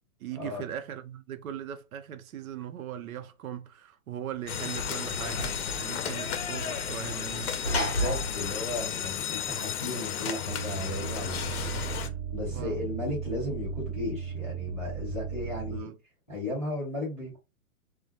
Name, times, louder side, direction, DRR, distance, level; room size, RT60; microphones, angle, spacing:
voice 1, 0.2-7.9 12.1-12.2 12.5-12.9 15.5-16.0, right 10 dB, 75° right, 0.6 m, -40 dB
Sliding door / Slam, 4.4-9.8, equal, 45° left, 0.9 m, -35 dB
sound 1, 4.5-12.1, left 9 dB, 80° left, 0.6 m, -34 dB
voice 2, 7.7-11.5 12.3-15.9 16.3-17.4, left 2 dB, 10° left, 0.4 m, -35 dB
sound 2, 10.4-15.8, right 8 dB, 40° right, 0.8 m, -36 dB
2.1 x 2.1 x 2.8 m
hypercardioid pair, 165°, 43 cm